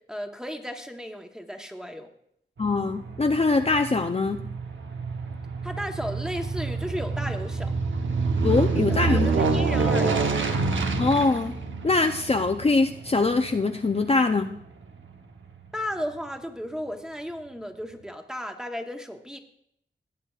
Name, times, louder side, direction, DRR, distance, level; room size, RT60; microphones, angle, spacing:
voice 1, 0.0-2.1 5.6-7.7 8.9-10.3 15.7-19.4, equal, 5° right, 4 dB, 1.0 m, -34 dB
voice 2, 2.6-4.4 8.4-9.3 11.0-11.6 11.8-14.5, left 3 dB, 30° left, 5 dB, 0.5 m, -23 dB
Aircraft, 2.6-15.1 15.5-15.6, right 4 dB, 85° right, 0.9 m, -28 dB
18.0 x 8.6 x 2.4 m, 0.71 s
wide cardioid pair, 70°, 19 cm